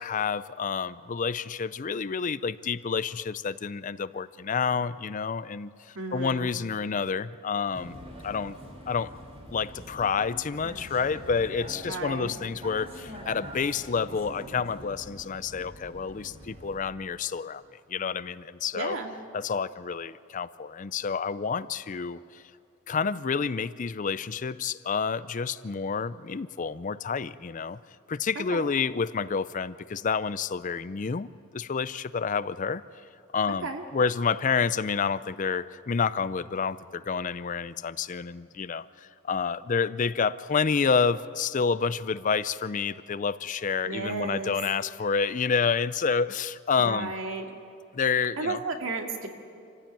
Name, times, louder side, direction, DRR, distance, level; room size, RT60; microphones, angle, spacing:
voice 1, 0.0-5.7 6.1-8.0 8.2-8.6 8.9-9.1 9.5-17.6 17.9-19.0 19.3-22.4 22.9-27.8 28.1-32.8 33.3-47.1 47.9-48.6, left 5 dB, 40° left, 16 dB, 0.5 m, -29 dB
voice 2, 6.0-6.5 11.9-12.4 18.7-19.1 28.4-28.7 33.6-33.8 43.9-44.6 46.8-47.5 48.4-49.3, right 3 dB, 75° right, 3 dB, 2.3 m, -33 dB
Vehicle, 7.7-16.8, equal, 30° right, 3.3 m, -44 dB
27.0 x 15.5 x 9.0 m, 2.6 s
head